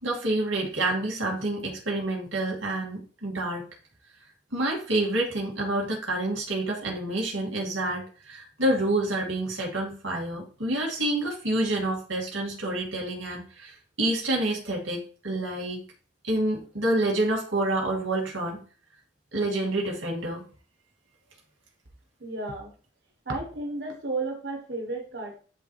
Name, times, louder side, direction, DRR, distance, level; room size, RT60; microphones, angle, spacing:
voice 1, 0.0-3.7 4.5-15.8 16.2-18.6 19.3-20.4, right 1 dB, 85° right, -1 dB, 2.4 m, -28 dB
voice 2, 22.2-22.7 23.3-25.4, right 2 dB, 65° right, 2 dB, 1.2 m, -33 dB
10.0 x 3.5 x 3.3 m, 0.39 s
head